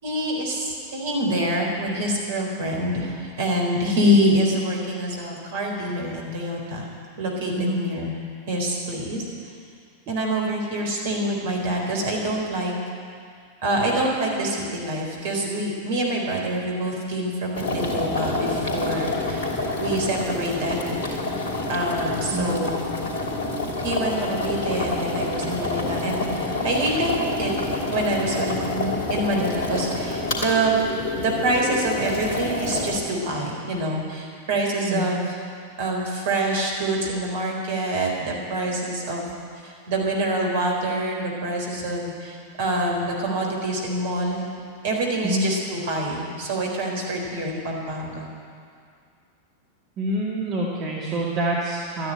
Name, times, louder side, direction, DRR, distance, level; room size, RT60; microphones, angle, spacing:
voice 1, 0.0-6.9 7.2-8.1 8.5-9.2 10.1-12.7 13.6-21.4 21.7-22.9 23.8-27.1 27.4-27.5 27.9-30.7 31.1-35.4 35.8-44.4 44.8-48.3, right 1 dB, 55° right, -1 dB, 3.9 m, -26 dB
sound 1, 17.5-33.0, left 2 dB, 50° left, 3.1 m, -28 dB
voice 2, 50.0-52.1, right 1 dB, 35° right, -5 dB, 2.2 m, -26 dB
13.0 x 10.0 x 9.2 m, 2.3 s
figure-of-eight pair, 90°, 0 cm